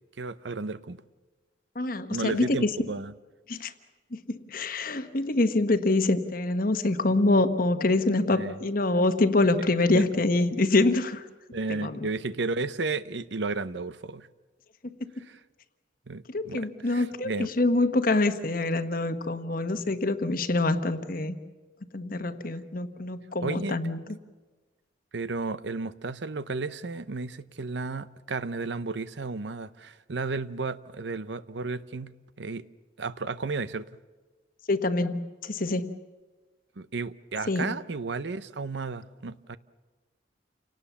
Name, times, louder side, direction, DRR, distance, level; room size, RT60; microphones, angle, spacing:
voice 1, 0.2-1.0 2.1-3.1 8.3-8.6 9.9-10.2 11.5-14.3 15.2-15.4 16.1-17.5 23.4-23.8 25.1-32.7 33.0-33.9 36.8-39.6, right 3 dB, 70° right, 15 dB, 0.7 m, -33 dB
voice 2, 1.7-2.7 3.5-3.7 4.3-11.2 11.7-12.1 16.3-21.3 21.9-24.0 34.7-35.9 37.5-37.7, left 2 dB, 50° left, 10 dB, 1.2 m, -25 dB
29.0 x 18.5 x 7.1 m, 1.3 s
head